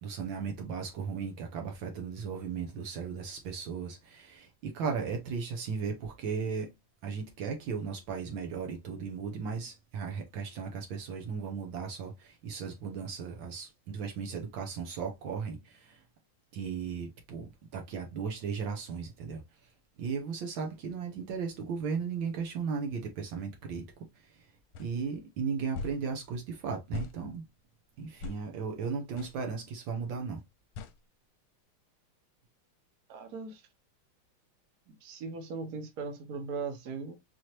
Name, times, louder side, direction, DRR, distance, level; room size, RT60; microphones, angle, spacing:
voice 1, 0.0-6.7 7.0-16.0 16.5-19.4 20.0-23.9 24.2-24.5 24.8-27.4 28.0-30.4, right 5 dB, 70° right, 1.5 m, -36 dB
sound 1, 24.7-24.9 25.7-26.0 26.9-27.2 28.2-28.4 29.2-29.4 30.8-31.0, left 4 dB, 80° left, 1.5 m, -39 dB
voice 2, 33.1-33.7 34.9-37.1, right 4 dB, 55° right, 1.4 m, -39 dB
4.7 x 2.9 x 2.9 m
omnidirectional pair, 2.3 m